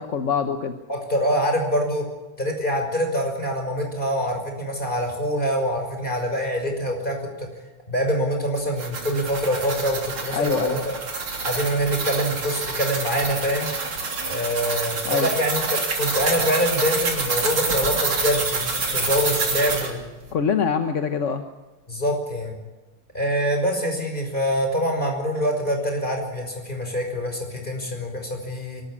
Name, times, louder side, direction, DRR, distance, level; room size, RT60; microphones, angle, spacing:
voice 1, 0.0-0.7 10.3-10.8 15.0-15.3 20.3-21.4, left 6 dB, 45° left, 7 dB, 1.1 m, -24 dB
voice 2, 0.9-2.1 2.4-7.5 7.9-11.0 11.4-13.7 14.3-20.0 21.9-22.6 23.1-28.8, equal, 20° left, 3 dB, 5.9 m, -25 dB
sound 1, 8.6-19.9, right 4 dB, 70° right, 4.2 m, -27 dB
25.0 x 13.5 x 9.9 m, 1.1 s
omnidirectional pair, 2.4 m